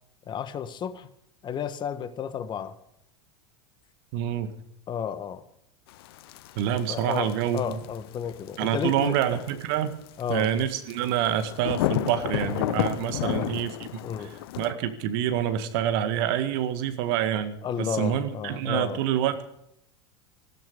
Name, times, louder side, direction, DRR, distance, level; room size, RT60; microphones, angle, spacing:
voice 1, 0.3-1.1 1.4-2.8 4.9-5.4 6.9-9.4 10.2-10.5 13.2-13.5 14.0-14.3 17.6-19.0, left 8 dB, 35° left, 12 dB, 1.5 m, -32 dB
voice 2, 4.1-4.5 6.6-7.8 8.6-9.9 10.3-13.7 14.2-14.3 14.6-19.4, right 10 dB, 60° right, 10 dB, 1.9 m, -27 dB
sound 1, 5.9-14.7, left 15 dB, 65° left, 0.8 m, -32 dB
15.5 x 13.5 x 5.3 m, 0.76 s
hypercardioid pair, 85°, 14 cm